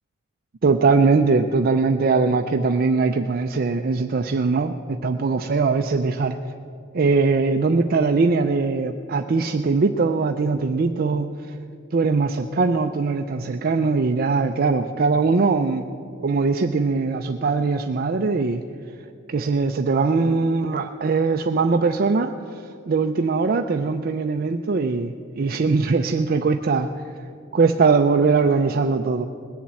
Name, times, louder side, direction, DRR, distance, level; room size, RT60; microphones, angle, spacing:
voice 1, 0.6-6.4 6.9-11.6 11.9-15.9 16.2-18.6 19.3-26.9 27.5-29.3, right 4 dB, 50° right, 6 dB, 0.5 m, -21 dB
19.5 x 7.2 x 8.7 m, 2.5 s
head